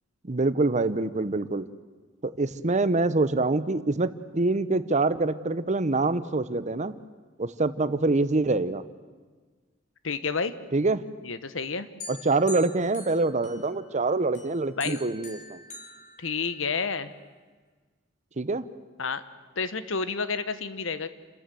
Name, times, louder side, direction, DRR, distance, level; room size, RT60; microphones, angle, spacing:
voice 1, 0.2-1.7 2.2-7.0 7.4-8.8 10.7-11.0 12.1-15.6 18.4-18.6, right 3 dB, 40° right, 14 dB, 0.8 m, -25 dB
voice 2, 10.0-10.5 11.2-11.9 14.8-15.0 16.2-17.1 19.0-19.2 19.6-21.1, left 5 dB, 75° left, 13 dB, 1.1 m, -30 dB
sound 1, 12.0-13.9 14.3-16.9, left 2 dB, 40° left, 4.1 m, -44 dB
29.5 x 13.5 x 7.7 m, 1.4 s
head